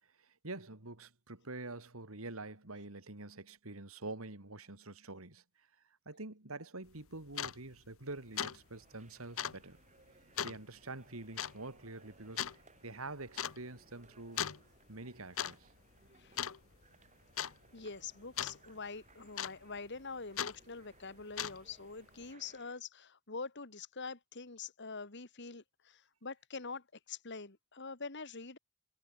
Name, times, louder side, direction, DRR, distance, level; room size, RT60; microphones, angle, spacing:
voice 1, 0.2-5.4 6.0-9.8 10.4-12.5 12.8-14.4 14.9-15.7, right 2 dB, 90° right, 3.2 m, -46 dB
sound 1, 6.9-7.0 7.3-7.6 7.9-8.1 8.4-8.6 8.8-8.9 9.4-9.6 10.4-10.6 11.4-11.6 12.4-12.6 13.4-13.6 14.4-14.6 15.2-15.5 15.8-16.1 16.4-16.9 17.4-17.5 18.4-18.6 19.4-19.8 20.4-20.6 21.2-21.7, left 9 dB, 70° left, 1.0 m, -37 dB
sound 2, 8.2-22.8, right 3 dB, 35° right, 4.9 m, -65 dB
voice 2, 17.7-28.6, left 4 dB, 55° left, 2.4 m, -45 dB
head